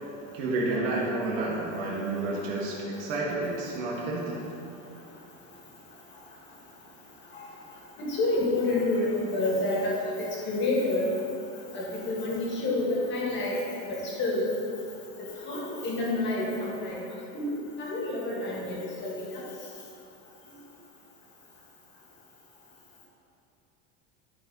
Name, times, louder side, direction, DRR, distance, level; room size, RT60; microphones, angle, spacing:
voice 1, 0.3-4.4, right 2 dB, 90° right, -5 dB, 2.0 m, -30 dB
voice 2, 8.1-11.0 11.7-13.6 13.9-14.5 15.5-17.0 17.3-17.5 17.8-19.4, left 2 dB, 30° left, -4 dB, 1.9 m, -28 dB
13.0 x 4.6 x 4.0 m, 2.8 s
cardioid pair, 160°, 36 cm